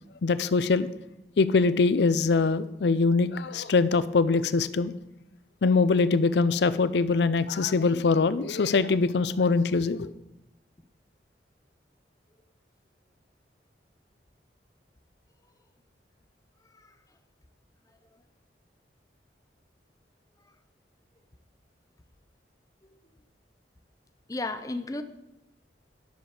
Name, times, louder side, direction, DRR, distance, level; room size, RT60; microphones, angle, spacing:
voice 1, 0.2-0.9 1.4-4.9 5.6-10.1, left 4 dB, 70° left, 14 dB, 0.5 m, -23 dB
voice 2, 16.6-17.0 18.1-18.2 20.4-20.5 24.3-25.0, left 2 dB, 20° left, 9 dB, 0.6 m, -35 dB
10.5 x 6.9 x 4.8 m, 0.91 s
head